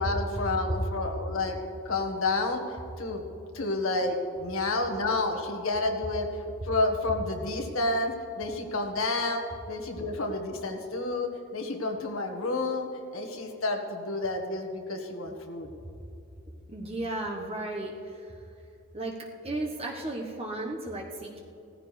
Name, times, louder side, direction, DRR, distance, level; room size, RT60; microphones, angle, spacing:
voice 1, 0.0-1.6 1.8-2.6 3.0-3.2 3.5-6.3 6.6-15.7, left 2 dB, 70° left, 2 dB, 1.6 m, -30 dB
voice 2, 16.7-18.3 18.9-19.2 19.4-21.4, right 2 dB, 30° right, 0 dB, 1.2 m, -34 dB
18.0 x 14.5 x 3.4 m, 2.7 s
head